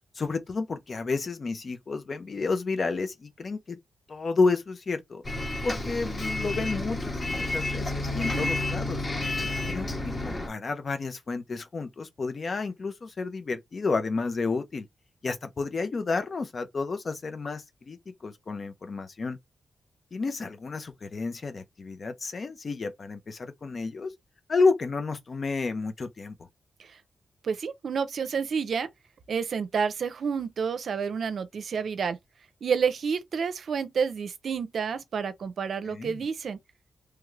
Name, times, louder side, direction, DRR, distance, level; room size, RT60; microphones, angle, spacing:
voice 1, 0.1-3.8 4.1-5.2 5.6-9.0 9.7-14.9 15.2-19.4 20.1-24.1 24.5-26.5 35.9-36.3, left 4 dB, 50° left, 0.8 m, -30 dB
Bus, 5.2-10.5, left 2 dB, 30° left, 1.2 m, -30 dB
voice 2, 8.2-8.5 26.8-27.0 27.4-28.9 29.3-32.2 32.6-36.6, right 6 dB, 70° right, 0.5 m, -29 dB
3.3 x 2.4 x 3.2 m
cardioid pair, 70°, 0 cm